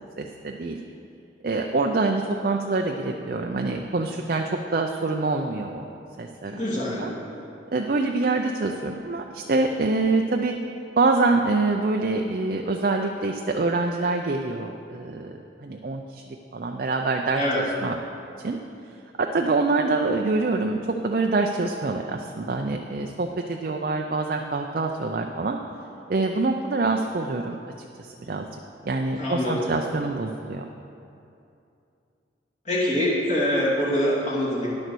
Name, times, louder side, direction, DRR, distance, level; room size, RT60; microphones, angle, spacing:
voice 1, 0.2-0.8 1.4-5.9 6.2-6.6 7.0-7.1 7.7-10.5 11.0-16.2 16.5-18.0 18.4-18.6 19.2-25.6 26.1-27.6 27.9-28.5 28.8-30.6, right 3 dB, 45° right, 3 dB, 0.4 m, -25 dB
voice 2, 6.5-7.1 17.3-17.6 29.2-29.6 32.6-34.7, left 1 dB, 40° left, -7 dB, 2.7 m, -24 dB
10.5 x 6.6 x 6.2 m, 2.7 s
head